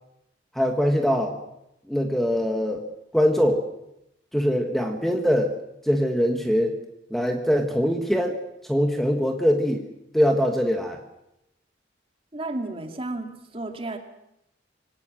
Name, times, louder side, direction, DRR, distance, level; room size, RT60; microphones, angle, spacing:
voice 1, 0.5-1.4 1.9-2.9 3.1-3.7 4.3-5.5 5.8-6.8 7.1-8.3 8.7-9.8 10.1-11.0, equal, ahead, 4 dB, 1.6 m, -22 dB
voice 2, 12.3-14.0, right 2 dB, 30° right, 5 dB, 2.3 m, -32 dB
24.5 x 18.0 x 7.6 m, 0.84 s
head